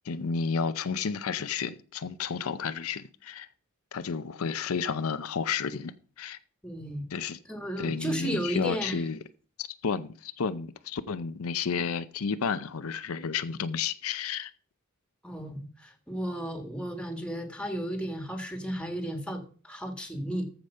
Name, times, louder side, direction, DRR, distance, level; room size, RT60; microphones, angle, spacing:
voice 1, 0.1-3.5 3.9-6.4 7.1-7.4 7.8-9.2 9.6-14.5, left 6 dB, 85° left, 0.6 m, -31 dB
voice 2, 6.6-7.1 7.5-9.0 15.2-20.5, right 1 dB, 5° left, 1.6 m, -34 dB
14.0 x 5.1 x 5.4 m
head